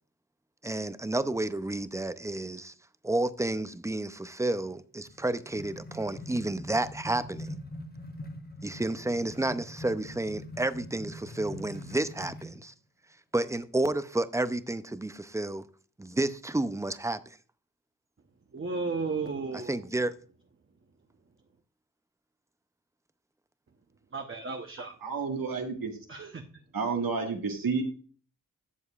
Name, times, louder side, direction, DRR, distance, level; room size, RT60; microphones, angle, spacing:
voice 1, 0.6-2.7 3.0-7.5 8.6-12.7 13.3-15.6 16.0-17.2 19.7-20.1, right 2 dB, 10° right, 0.5 m, -31 dB
sound 1, 5.0-12.6, left 1 dB, 30° left, 1.0 m, -43 dB
voice 2, 18.5-19.8 24.1-24.9 26.1-26.4, right 4 dB, 35° right, 0.9 m, -34 dB
voice 3, 24.8-26.0 26.7-27.8, right 5 dB, 85° right, 1.7 m, -31 dB
12.5 x 7.1 x 2.4 m
wide cardioid pair, 80°, 34 cm